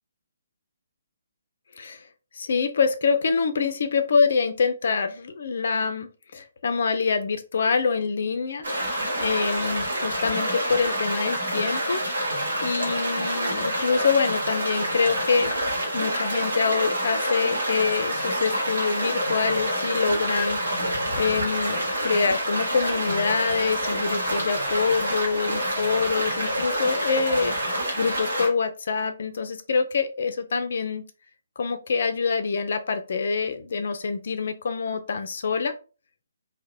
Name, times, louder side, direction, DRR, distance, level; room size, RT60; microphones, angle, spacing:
voice 1, 1.8-2.1 2.3-8.6 9.2-12.0 12.6-15.7 15.9-20.6 21.2-27.6 28.0-31.0 31.6-35.7, left 5 dB, 55° left, 8 dB, 0.4 m, -25 dB
sound 1, 8.6-28.5, right 1 dB, 65° right, 1.0 m, -27 dB
2.8 x 2.0 x 2.4 m, 0.34 s
figure-of-eight pair, 135°, 0 cm